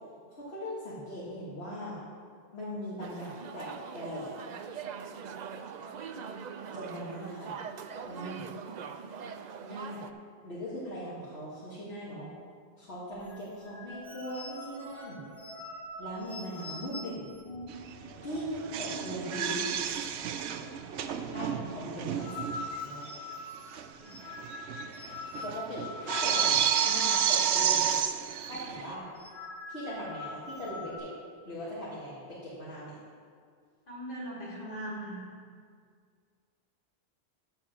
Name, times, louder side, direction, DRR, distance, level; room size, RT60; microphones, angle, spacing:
voice 1, 0.3-2.0 2.5-3.7 3.9-4.3 6.7-7.5 8.0-8.5 9.6-10.0 10.4-12.3 12.8-15.2 16.0-17.2 18.2-19.7 21.3-23.0 25.4-27.9 28.5-29.1 29.7-31.1 31.5-32.9, equal, 70° left, -9 dB, 2.0 m, -39 dB
sound 1, 3.0-10.1, right 6 dB, 55° right, 0.5 m, -42 dB
sound 2, 13.2-19.1 19.4-19.6 19.8-20.4 20.7-28.0 28.3-28.5 29.0-31.0, left 2 dB, 30° left, 1.5 m, -43 dB
sound 3, 17.7-17.9 18.2-22.8 23.1-23.2 23.7-23.9 24.1-28.9, right 8 dB, 85° right, 0.9 m, -30 dB
voice 2, 33.9-35.2, right 1 dB, 55° left, -6 dB, 2.9 m, -39 dB
13.5 x 4.5 x 6.1 m, 2.1 s
omnidirectional pair, 1.1 m